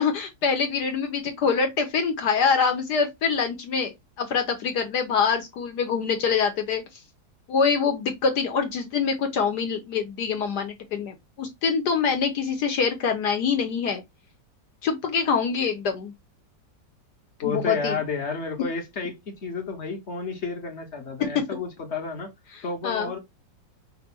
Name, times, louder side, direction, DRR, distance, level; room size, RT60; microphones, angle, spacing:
voice 1, 0.0-6.8 7.5-14.0 14.8-16.1 17.4-18.0 21.3-21.4 22.8-23.1, left 6 dB, 65° left, 1.3 m, -25 dB
voice 2, 17.4-22.3 22.6-23.2, left 4 dB, 40° left, 1.2 m, -31 dB
5.7 x 2.2 x 4.2 m
omnidirectional pair, 2.0 m